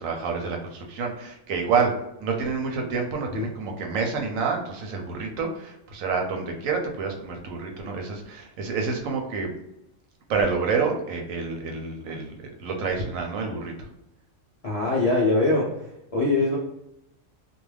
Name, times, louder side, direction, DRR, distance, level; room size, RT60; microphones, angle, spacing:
voice 1, 0.0-1.9 2.2-9.5 10.3-13.9, right 5 dB, 85° right, 2 dB, 1.0 m, -28 dB
voice 2, 14.6-16.6, left 2 dB, 55° left, -6 dB, 0.4 m, -23 dB
2.4 x 2.2 x 3.2 m, 0.85 s
omnidirectional pair, 1.4 m